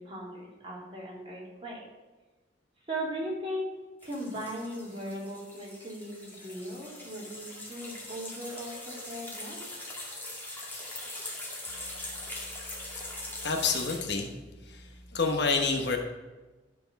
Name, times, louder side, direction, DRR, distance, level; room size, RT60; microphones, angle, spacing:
voice 1, 0.0-1.8 2.9-3.7 4.0-9.6, equal, 30° right, -5 dB, 2.9 m, -38 dB
sound 1, 4.0-14.0, left 1 dB, 10° left, 2.2 m, -42 dB
voice 2, 13.4-14.3 14.7-14.8 15.1-16.0, left 4 dB, 65° left, 4 dB, 1.1 m, -27 dB
11.5 x 4.8 x 5.3 m, 1.2 s
head